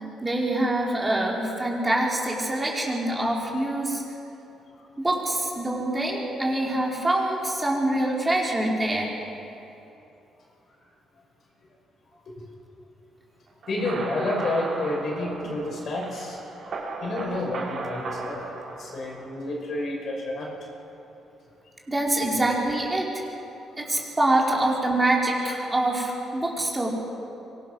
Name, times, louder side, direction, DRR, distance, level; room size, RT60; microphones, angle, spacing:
voice 1, 0.2-4.0 5.0-9.1 21.9-23.2 23.8-26.9, right 1 dB, 15° right, -2 dB, 4.6 m, -25 dB
sound 1, 13.6-19.4, right 3 dB, 60° right, 5.4 m, -36 dB
voice 2, 13.7-16.4 17.0-18.5 18.8-20.5, left 2 dB, 55° left, -1 dB, 6.4 m, -29 dB
24.5 x 19.0 x 6.4 m, 2.9 s
cardioid pair, 90°, 0 cm